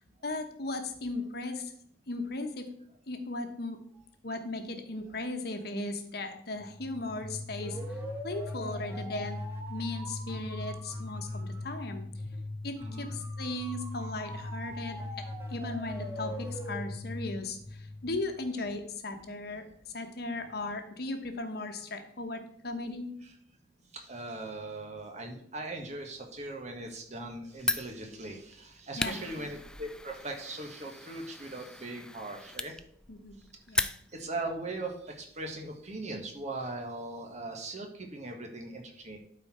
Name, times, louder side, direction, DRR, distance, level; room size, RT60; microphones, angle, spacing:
voice 1, 0.2-1.7 2.1-2.7 3.1-3.8 4.2-8.0 8.2-9.4 9.7-12.0 12.6-15.0 15.5-23.1 29.0-29.5 33.1-33.4 33.7-33.9, left 2 dB, 60° left, 6 dB, 1.2 m, -37 dB
sound 1, 6.6-18.4, left 1 dB, 15° right, 1.6 m, -39 dB
voice 2, 12.8-13.1 23.9-32.7 34.1-39.2, right 2 dB, 40° right, 2 dB, 1.6 m, -39 dB
Fire, 27.6-34.4, left 2 dB, 5° left, 0.3 m, -37 dB
12.0 x 4.5 x 4.3 m, 0.67 s
head